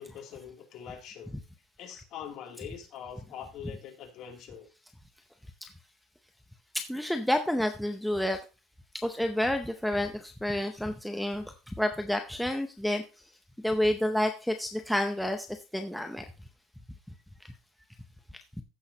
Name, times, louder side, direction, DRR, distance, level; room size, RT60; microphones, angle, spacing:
voice 1, 0.0-1.4 1.8-4.7, left 8 dB, 45° left, 1 dB, 2.8 m, -43 dB
voice 2, 6.9-8.4 9.0-11.4 11.8-13.0 13.6-15.5 15.7-16.2, left 1 dB, ahead, 4 dB, 0.7 m, -29 dB
15.0 x 6.3 x 2.8 m, 0.30 s
cardioid pair, 160°, 0 cm